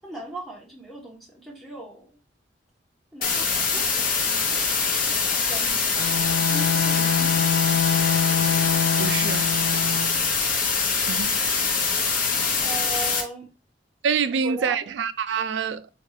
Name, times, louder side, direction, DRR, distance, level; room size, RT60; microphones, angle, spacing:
voice 1, 0.0-2.1 3.1-4.9 5.1-6.1 6.5-7.4 12.6-13.5 14.3-14.9, right 2 dB, ahead, 1.0 m, -38 dB
sound 1, 3.2-13.2, left 5 dB, 50° left, 0.7 m, -24 dB
Bowed string instrument, 6.0-10.3, left 7 dB, 80° left, 0.4 m, -25 dB
voice 2, 9.0-9.5 11.0-11.6 14.0-15.9, right 6 dB, 75° right, 0.3 m, -26 dB
3.5 x 2.4 x 3.1 m
head